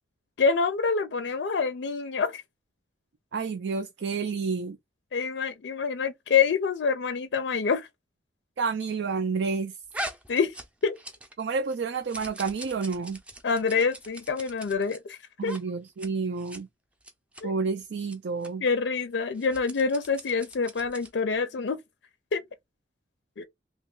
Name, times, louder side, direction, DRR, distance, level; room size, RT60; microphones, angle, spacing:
voice 1, 0.4-2.4 5.1-7.9 10.3-10.6 10.8-11.0 13.4-15.5 17.4-17.5 18.6-21.8 22.3-22.4 23.4-23.5, left 5 dB, 80° left, 0.4 m, -26 dB
voice 2, 3.3-4.8 8.6-9.8 11.4-13.2 15.4-16.7 17.4-18.6, right 5 dB, 80° right, 0.4 m, -30 dB
sound 1, 9.9-11.4 11.7-15.0 15.4-15.6 15.9-16.1 16.4-16.6 17.0-17.4 18.0-18.2 18.4-18.5 19.3-21.2, right 1 dB, 5° right, 0.5 m, -41 dB
3.0 x 2.3 x 3.6 m
head